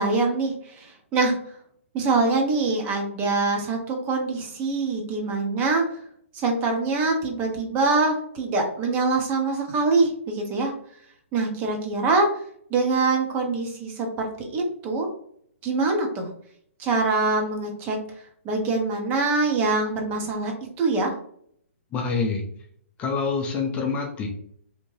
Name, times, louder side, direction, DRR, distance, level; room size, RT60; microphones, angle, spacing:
voice 1, 0.0-1.3 1.9-5.8 6.3-10.7 11.3-12.3 12.7-15.1 15.6-16.3 16.8-18.0 18.4-20.5 20.8-21.1, right 3 dB, 25° right, 2 dB, 0.6 m, -24 dB
voice 2, 21.9-22.4 23.0-24.3, left 5 dB, 20° left, 0 dB, 0.4 m, -26 dB
2.8 x 2.1 x 3.1 m, 0.64 s
figure-of-eight pair, 130°, 7 cm